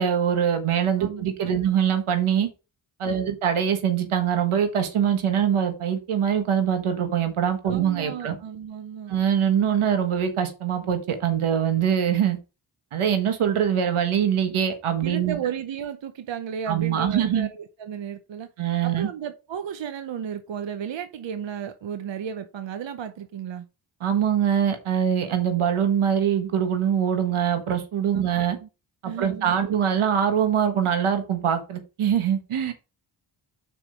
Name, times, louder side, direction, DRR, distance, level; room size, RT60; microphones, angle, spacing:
voice 1, 0.0-2.5 3.0-8.4 9.1-12.4 12.9-15.4 16.7-17.5 18.6-19.1 24.0-28.6 29.0-32.7, right 8 dB, 90° right, 1.4 m, -23 dB
voice 2, 1.0-1.6 3.0-3.3 7.7-9.1 15.0-18.5 18.8-23.7 28.1-28.3 28.6-28.7 29.0-29.5, right 8 dB, 65° right, 0.8 m, -34 dB
5.9 x 4.4 x 5.3 m
cardioid pair, 65°, 48 cm